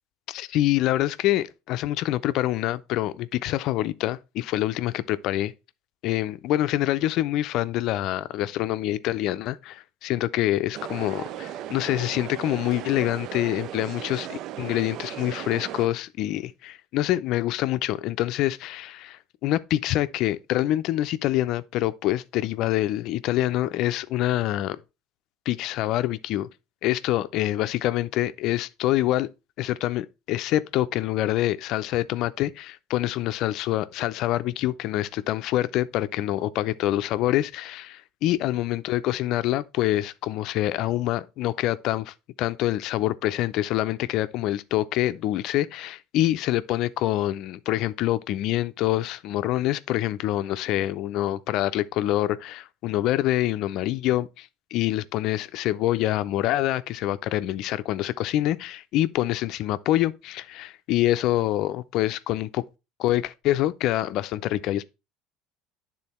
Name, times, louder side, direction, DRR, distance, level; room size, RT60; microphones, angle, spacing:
voice 1, 0.3-5.5 6.0-24.8 25.5-26.5 26.8-29.3 29.6-62.6 63.0-64.8, left 14 dB, 60° left, 0.5 m, -26 dB
sound 1, 10.7-15.9, right 12 dB, 55° right, 0.3 m, -36 dB
9.8 x 3.8 x 4.2 m
supercardioid pair, 125°, 0 cm